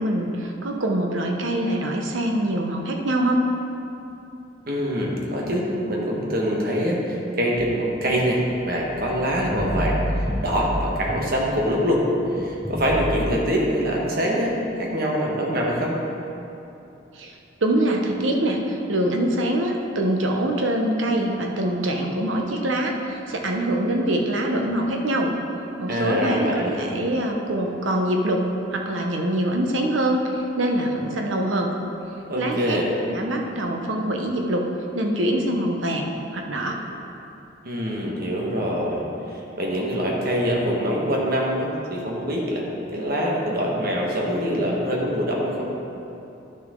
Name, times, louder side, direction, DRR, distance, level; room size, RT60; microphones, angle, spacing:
voice 1, 0.0-3.4 17.1-17.3 17.6-25.3 25.8-26.5 26.8-28.5 28.7-31.7 32.4-32.8 33.1-34.7 34.9-36.1 36.3-36.8, right 1 dB, 85° right, 2 dB, 1.0 m, -24 dB
voice 2, 4.7-12.0 12.3-16.0 25.9-26.8 32.3-32.9 37.6-42.7 42.9-45.6, equal, 50° right, -2 dB, 1.4 m, -24 dB
sound 1, 8.0-11.9 12.4-13.3, equal, 5° right, 0.5 m, -30 dB
11.0 x 6.4 x 3.8 m, 2.8 s
head